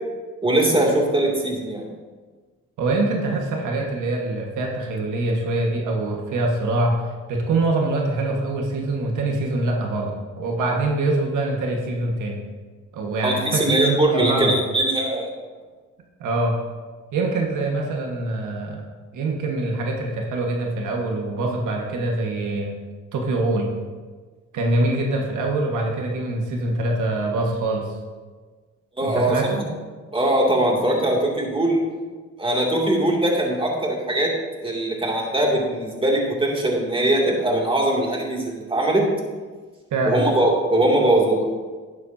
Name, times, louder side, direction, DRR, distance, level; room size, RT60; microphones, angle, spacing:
voice 1, 0.4-1.8 13.2-15.3 29.0-29.4 30.1-31.8 32.4-34.3 34.6-39.0 40.1-41.5, right 1 dB, 15° right, -2 dB, 2.6 m, -21 dB
voice 2, 2.8-7.0 7.3-12.4 12.9-14.5 16.2-16.5 17.1-18.8 19.1-22.7 23.1-23.7 24.5-27.9 29.0-29.6 39.9-40.2, right 2 dB, 80° right, 0 dB, 1.7 m, -24 dB
12.5 x 10.0 x 2.8 m, 1.4 s
cardioid pair, 90°, 30 cm